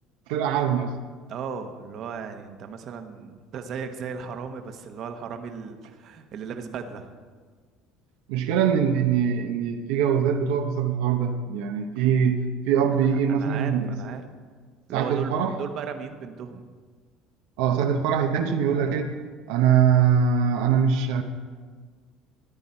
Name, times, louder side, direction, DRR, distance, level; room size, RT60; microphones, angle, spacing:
voice 1, 0.3-0.9 8.3-13.9 14.9-15.5 17.6-19.1 19.5-21.2, right 7 dB, 85° right, 4 dB, 0.8 m, -23 dB
voice 2, 1.3-7.1 12.9-14.2 14.9-16.7, right 6 dB, 50° right, 6 dB, 1.0 m, -36 dB
13.5 x 9.8 x 4.4 m, 1.6 s
cardioid pair, 120°, 0 cm